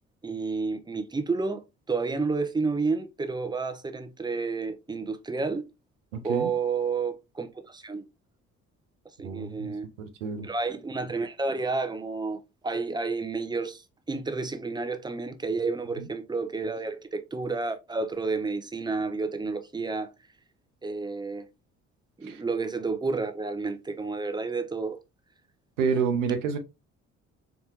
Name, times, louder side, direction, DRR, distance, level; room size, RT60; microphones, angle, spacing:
voice 1, 0.2-5.6 6.2-8.0 9.2-9.9 10.4-13.8 14.1-20.1 20.8-21.5 22.2-25.0, right 4 dB, 10° right, 0.5 m, -30 dB
voice 2, 9.2-10.5 22.3-22.4 25.8-26.6, right 6 dB, 75° right, 0.6 m, -28 dB
4.2 x 2.3 x 2.8 m
figure-of-eight pair, 45°, 37 cm